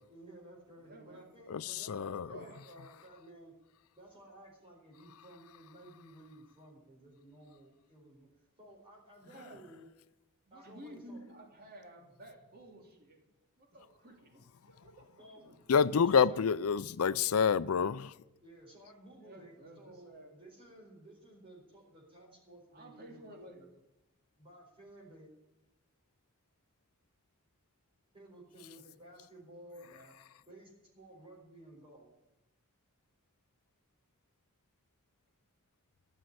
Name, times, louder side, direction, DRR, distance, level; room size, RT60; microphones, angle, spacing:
voice 1, 0.1-3.5 3.9-8.3 8.6-9.9 10.5-11.2 15.2-15.5 16.0-16.5 18.4-23.4 24.4-25.3 28.1-29.9 30.5-32.1, right 1 dB, 25° right, -3 dB, 4.3 m, -55 dB
voice 2, 0.8-1.2 2.3-2.6 9.2-9.6 10.5-13.2 13.6-15.8 19.2-20.3 22.7-23.7 28.7-29.2 29.6-30.1, right 1 dB, 45° right, 2 dB, 2.9 m, -53 dB
voice 3, 1.5-2.3 15.7-18.1, left 6 dB, 80° left, 18 dB, 0.5 m, -28 dB
14.5 x 6.5 x 9.5 m, 0.92 s
head